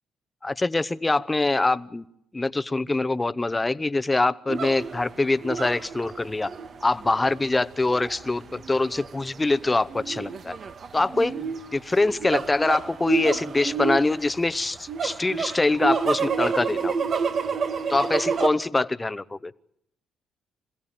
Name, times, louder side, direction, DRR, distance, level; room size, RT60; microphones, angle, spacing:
voice 1, 0.4-2.0 2.3-6.5 6.8-10.6 10.9-11.3 11.7-16.9 17.9-19.5, left 2 dB, 20° left, 15 dB, 0.9 m, -24 dB
sound 1, 4.5-18.5, right 5 dB, 50° right, 1.5 m, -29 dB
27.0 x 16.5 x 8.9 m, 0.74 s
cardioid pair, 90°, 0 cm